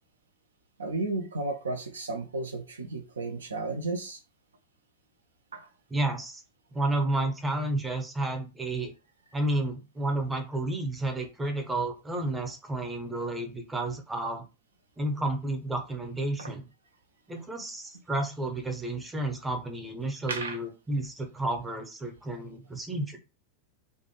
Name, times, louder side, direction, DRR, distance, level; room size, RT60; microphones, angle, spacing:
voice 1, 0.8-4.2 5.5-5.7 16.4-16.5 20.3-20.6, right 3 dB, 70° right, 0.4 m, -33 dB
voice 2, 5.9-6.4 6.7-8.9 9.3-14.4 15.0-16.7 17.3-23.2, right 2 dB, 10° right, 0.6 m, -31 dB
2.5 x 2.1 x 2.8 m
figure-of-eight pair, 90°, 0 cm